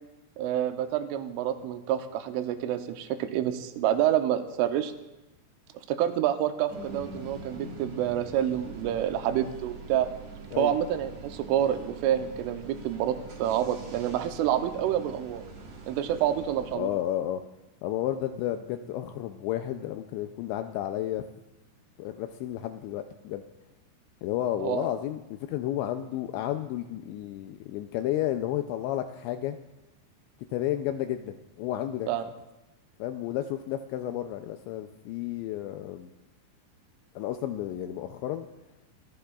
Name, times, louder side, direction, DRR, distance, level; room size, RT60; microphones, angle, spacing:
voice 1, 0.4-4.9 5.9-10.1 10.6-15.4 15.9-16.9 24.6-24.9 32.1-32.2, right 11 dB, 90° right, 8 dB, 3.2 m, -28 dB
sound 1, 6.7-16.8, right 4 dB, 60° right, 1.6 m, -44 dB
voice 2, 16.8-17.4 17.8-21.2 22.0-23.4 24.2-25.2 25.5-29.6 30.5-32.1 33.0-36.1 37.2-38.5, left 12 dB, 85° left, 7 dB, 2.6 m, -32 dB
23.0 x 14.0 x 2.4 m, 0.97 s
omnidirectional pair, 5.6 m